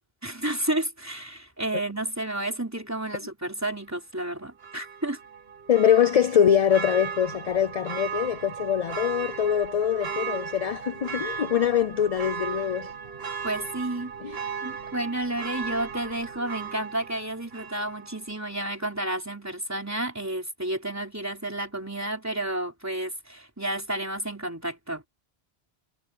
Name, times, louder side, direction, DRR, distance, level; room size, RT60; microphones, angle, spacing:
voice 1, 0.2-5.2 13.4-25.0, right 1 dB, 15° right, 3.5 m, -31 dB
Church bell, 4.6-18.3 18.6-18.7, right 6 dB, 70° right, 1.4 m, -36 dB
voice 2, 5.7-12.9 14.2-14.3, left 9 dB, 50° left, 0.4 m, -23 dB
omnidirectional pair, 1.1 m